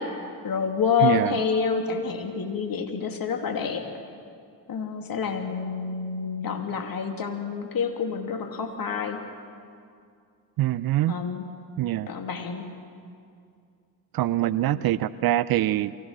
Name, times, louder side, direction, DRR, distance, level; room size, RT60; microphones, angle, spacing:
voice 1, 0.0-3.9 4.7-9.2 11.1-11.5 12.1-12.7 14.7-14.9, left 6 dB, 45° left, 4 dB, 2.8 m, -28 dB
voice 2, 1.0-1.4 10.6-11.1 11.8-12.1 14.1-15.9, right 14 dB, 50° right, 17 dB, 0.6 m, -24 dB
23.0 x 17.0 x 7.6 m, 2.3 s
hypercardioid pair, 50°, 47 cm